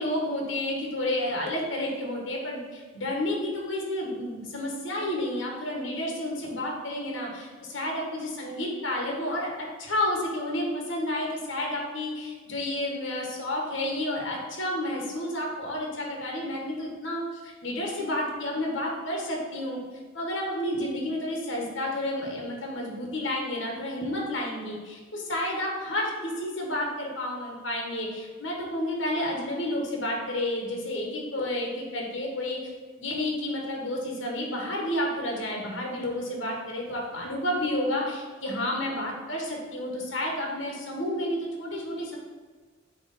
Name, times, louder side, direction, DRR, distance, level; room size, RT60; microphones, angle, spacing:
voice 1, 0.0-19.8 20.1-32.6 33.0-42.2, left 1 dB, 70° left, -1 dB, 1.4 m, -31 dB
7.3 x 3.1 x 4.1 m, 1.4 s
head